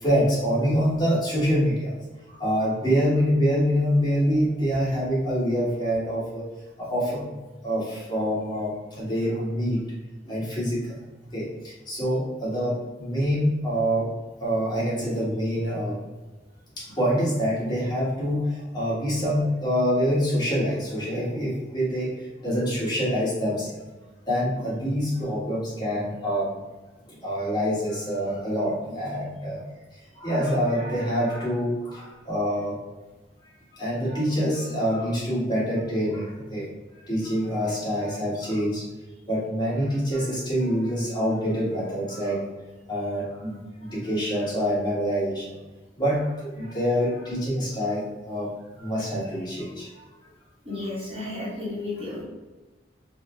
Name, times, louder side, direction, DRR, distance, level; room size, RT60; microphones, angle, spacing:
voice 1, 0.0-1.9 2.4-6.4 6.8-7.2 7.6-8.7 9.0-9.8 10.2-10.9 11.3-11.5 11.9-14.1 14.4-16.0 16.8-22.1 22.4-23.7 24.3-26.5 27.2-29.6 30.2-32.8 33.8-36.7 37.1-38.8 39.3-42.4 42.9-45.4 46.0-48.5 48.8-49.9, equal, 25° left, -8 dB, 1.4 m, -25 dB
voice 2, 50.6-52.2, left 2 dB, 30° right, -7 dB, 1.0 m, -32 dB
3.7 x 2.1 x 3.1 m, 1.2 s
head